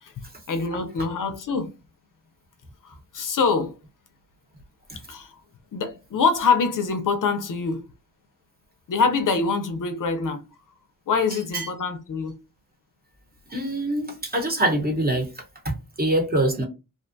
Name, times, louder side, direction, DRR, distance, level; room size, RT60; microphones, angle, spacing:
voice 1, 0.0-1.7 2.8-3.8 5.1-5.4 5.7-7.8 8.9-10.4 11.1-12.3, left 4 dB, 60° left, 0.5 m, -25 dB
voice 2, 13.5-15.3 15.6-16.6, right 1 dB, 25° right, 0.9 m, -24 dB
2.5 x 2.2 x 2.5 m
wide cardioid pair, 105°, 36 cm